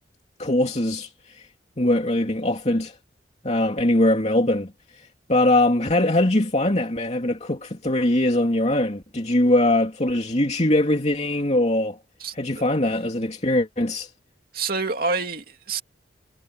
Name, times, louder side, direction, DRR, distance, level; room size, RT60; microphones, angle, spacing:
voice 1, 0.4-1.5 1.8-3.0 3.4-12.0 12.3-14.1, left 1 dB, 35° left, 2.8 m, -22 dB
voice 2, 14.5-15.8, right 4 dB, 50° right, 2.7 m, -27 dB
head